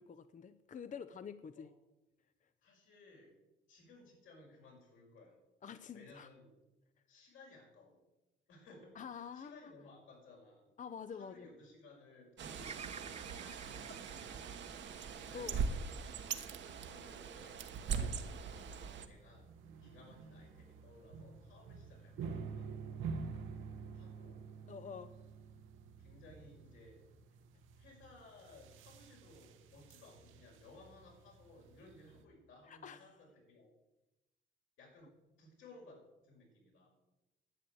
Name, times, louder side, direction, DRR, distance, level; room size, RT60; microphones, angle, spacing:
voice 1, 0.0-1.7 5.6-6.3 9.0-9.7 10.8-11.5 13.4-13.6 15.1-15.6 16.3-16.4 18.0-18.1 24.7-25.1 32.7-33.1, left 6 dB, 40° left, 11 dB, 0.6 m, -48 dB
voice 2, 2.6-3.3 3.7-5.4 5.9-6.6 7.1-8.0 8.5-10.7 11.1-14.2 14.4-14.9 15.3-15.7 16.6-18.7 19.1-19.5 19.8-23.2 23.9-24.5 26.0-27.0 27.8-33.7 34.8-35.1 35.4-36.9, left 2 dB, 85° left, -1 dB, 5.8 m, -60 dB
Bird, 12.4-19.1, right 5 dB, 65° right, 1.2 m, -41 dB
Bird vocalization bird call bird song, 12.6-16.8 17.4-18.1, right 5 dB, 35° right, 0.9 m, -53 dB
sound 1, 18.6-32.2, right 5 dB, 90° right, 1.3 m, -49 dB
11.0 x 9.1 x 7.8 m, 1.0 s
cardioid pair, 90°, 20 cm